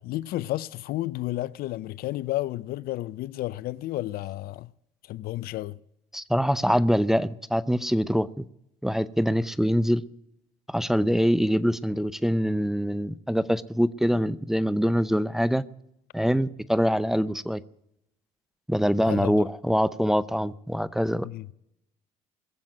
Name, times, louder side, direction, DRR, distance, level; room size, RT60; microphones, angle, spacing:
voice 1, 0.0-4.7 5.0-5.8 19.1-19.5 21.2-21.5, left 16 dB, 65° left, 0.5 m, -32 dB
voice 2, 6.1-8.4 8.8-10.0 10.7-15.6 16.1-17.6 18.7-21.3, equal, ahead, 0.6 m, -24 dB
21.0 x 7.5 x 7.7 m
hypercardioid pair, 70°, 17 cm